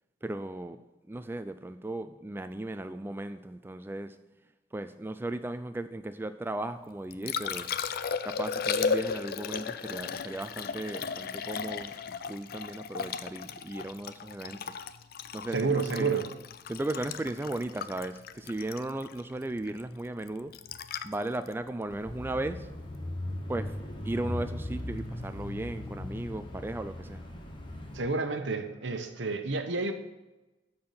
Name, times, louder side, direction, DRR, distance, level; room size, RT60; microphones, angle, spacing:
voice 1, 0.2-0.8 1.1-4.2 4.7-7.7 8.2-14.8 15.3-16.1 16.7-20.5 21.0-22.7 23.5-23.7 24.0-27.2, right 2 dB, 10° right, 10 dB, 0.3 m, -36 dB
Liquid, 6.8-22.9 25.8-25.9, left 6 dB, 55° left, 0.4 m, -36 dB
voice 2, 15.5-16.3 27.9-29.9, right 4 dB, 85° right, 7 dB, 0.9 m, -29 dB
Bicycle / Mechanisms, 21.9-28.0, left 1 dB, 25° left, 1.2 m, -38 dB
12.5 x 4.4 x 5.6 m, 1.1 s
head